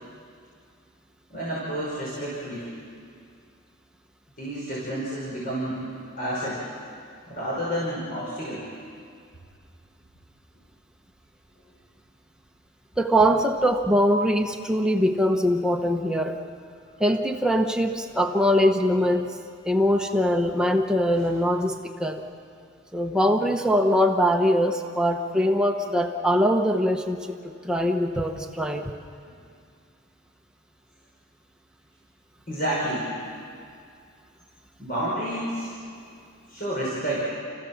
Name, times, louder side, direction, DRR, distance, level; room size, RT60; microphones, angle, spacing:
voice 1, 1.3-2.7 4.4-5.9 6.2-6.6 7.3-8.6 21.2-21.3 32.5-33.1 34.8-35.7 36.5-37.3, right 1 dB, 40° left, -7 dB, 5.3 m, -30 dB
voice 2, 13.0-16.4 17.0-19.3 19.7-22.2 22.9-28.9, equal, 5° right, 2 dB, 1.0 m, -22 dB
30.0 x 15.5 x 7.3 m, 2.3 s
head